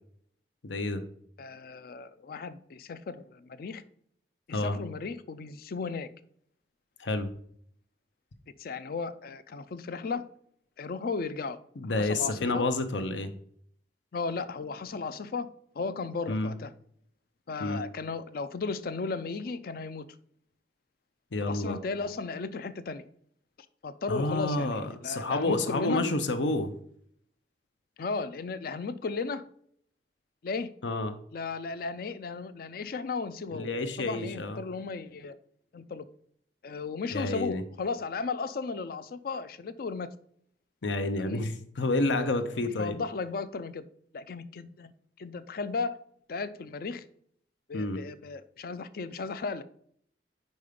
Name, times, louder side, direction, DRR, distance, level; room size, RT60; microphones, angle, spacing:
voice 1, 0.6-1.0 4.5-4.8 7.0-7.3 11.8-13.3 16.3-16.5 17.6-17.8 21.3-21.8 24.1-26.7 30.8-31.2 33.5-34.6 37.1-37.6 40.8-43.0 47.7-48.0, left 2 dB, 85° left, 8 dB, 0.7 m, -29 dB
voice 2, 1.4-3.8 4.5-6.1 8.6-10.2 10.8-11.6 12.0-12.6 14.1-15.5 15.7-16.7 17.5-20.1 21.4-23.0 23.8-26.0 28.0-29.4 30.4-30.7 31.3-33.7 34.0-35.4 35.7-36.0 36.6-40.1 41.2-41.4 42.1-42.3 42.8-43.8 44.1-44.9 45.2-46.0 46.3-47.0 47.7-49.6, left 4 dB, 55° left, 14 dB, 0.4 m, -35 dB
5.3 x 4.6 x 5.0 m, 0.65 s
head